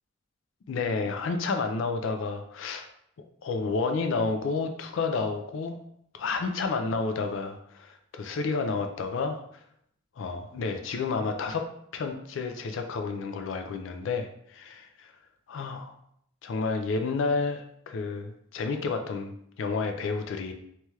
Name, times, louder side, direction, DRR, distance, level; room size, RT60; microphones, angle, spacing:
voice 1, 0.7-2.9 3.4-5.8 6.1-9.6 10.2-11.7 11.9-15.1 15.5-16.0 16.4-20.5, left 4 dB, 70° left, 6 dB, 0.3 m, -30 dB
2.9 x 2.3 x 3.1 m, 0.70 s
head